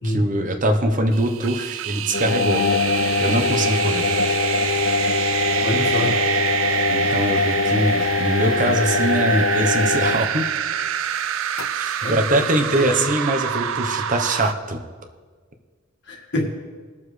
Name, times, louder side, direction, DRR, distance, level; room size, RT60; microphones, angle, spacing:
voice 1, 0.0-2.6 3.2-4.0 6.9-10.4 11.7-14.8, right 1 dB, 40° right, 5 dB, 0.9 m, -22 dB
sound 1, 1.1-14.5, right 10 dB, 85° right, 0.4 m, -26 dB
sound 2, 2.1-10.5 11.6-11.7, left 4 dB, 75° left, 0.6 m, -22 dB
voice 2, 5.6-6.2 12.0-12.4 12.8-13.1 16.1-16.5, left 1 dB, 60° left, 1 dB, 1.8 m, -26 dB
20.0 x 7.0 x 3.2 m, 1.5 s
head